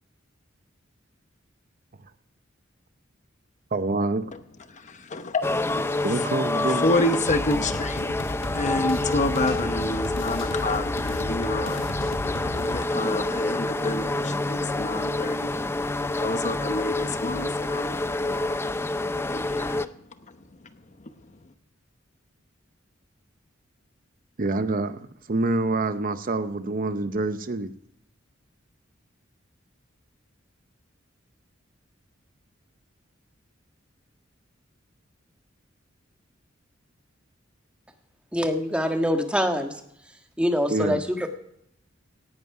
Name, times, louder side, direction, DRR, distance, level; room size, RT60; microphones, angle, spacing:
voice 1, 3.7-4.3 6.0-6.9 24.4-25.0 25.3-27.7 40.7-41.0, right 2 dB, 45° right, 0.7 m, -26 dB
voice 2, 4.7-6.3 6.6-12.1 12.5-18.8 19.3-19.9 21.0-21.1, left 2 dB, 40° left, 0.9 m, -29 dB
sound 1, 5.4-19.9, left 2 dB, 10° left, 0.5 m, -28 dB
sound 2, 7.3-12.8, left 1 dB, 70° left, 1.3 m, -34 dB
voice 3, 38.3-39.7 40.4-41.3, equal, 5° right, 1.5 m, -24 dB
18.0 x 11.0 x 4.7 m
head